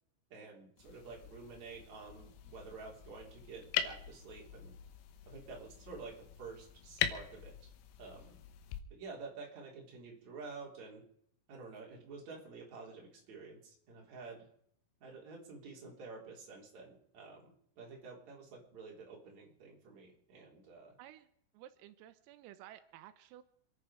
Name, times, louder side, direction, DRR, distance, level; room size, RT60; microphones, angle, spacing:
voice 1, 0.3-4.7 5.3-7.7 8.0-8.4 8.9-11.0 11.5-14.4 15.0-20.9, right 4 dB, 35° right, -1 dB, 4.3 m, -50 dB
sound 1, 0.8-8.8, left 10 dB, 85° left, 3.9 m, -42 dB
voice 2, 21.5-23.4, right 13 dB, 85° right, 11 dB, 3.6 m, -54 dB
27.5 x 10.5 x 4.9 m, 0.70 s
omnidirectional pair, 5.9 m